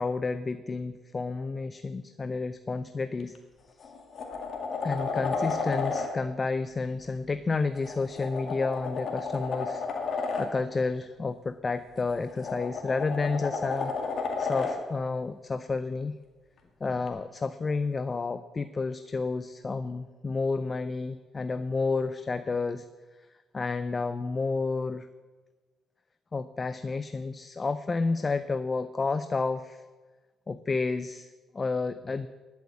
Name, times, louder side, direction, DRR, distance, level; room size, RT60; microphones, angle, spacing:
voice 1, 0.0-3.4 3.8-3.9 4.8-9.8 10.1-13.9 14.4-16.1 16.8-22.9 23.5-25.1 26.3-29.8 30.5-32.3, left 4 dB, 30° left, 11 dB, 0.5 m, -30 dB
sound 1, 3.2-3.4 3.8-6.1 7.7-10.5 12.0-14.8 17.1-17.2, left 4 dB, 55° left, 2.3 m, -32 dB
11.0 x 8.2 x 8.2 m, 1.3 s
cardioid pair, 90°, 0 cm